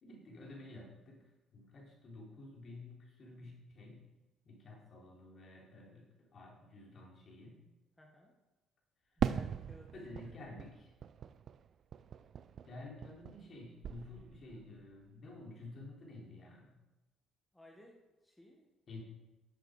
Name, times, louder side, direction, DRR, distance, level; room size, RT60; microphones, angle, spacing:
voice 1, 0.0-4.0 4.4-7.6 9.9-10.9 12.7-16.8 18.9-19.0, left 2 dB, 50° left, -1 dB, 3.3 m, -51 dB
voice 2, 8.0-8.4 9.2-9.9 10.2-10.7 17.5-18.7, equal, 10° left, 0 dB, 1.7 m, -59 dB
Fireworks, 9.2-13.6 13.8-14.6, right 8 dB, 55° right, 0.4 m, -40 dB
9.7 x 7.9 x 5.0 m, 1.1 s
supercardioid pair, 75°, 0 cm